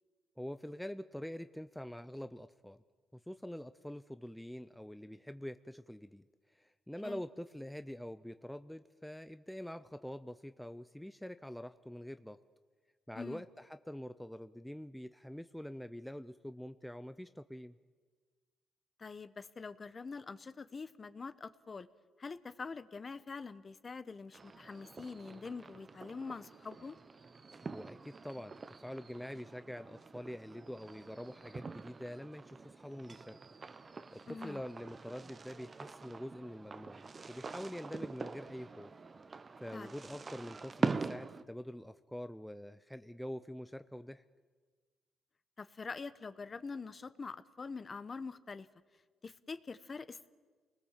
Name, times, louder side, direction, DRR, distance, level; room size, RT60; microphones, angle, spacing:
voice 1, 0.4-2.8 3.1-12.4 13.1-17.8 27.6-33.4 34.1-38.9 39.6-44.2, equal, 5° left, 10 dB, 0.6 m, -45 dB
voice 2, 19.0-21.9 22.2-27.0 34.3-34.6 39.7-39.9 45.6-48.7 49.2-50.3, left 4 dB, 35° left, 13 dB, 1.0 m, -45 dB
sound 1, 24.3-41.4, right 4 dB, 35° right, 0.9 m, -44 dB
28.5 x 20.0 x 7.4 m, 1.5 s
cardioid pair, 90°, 0 cm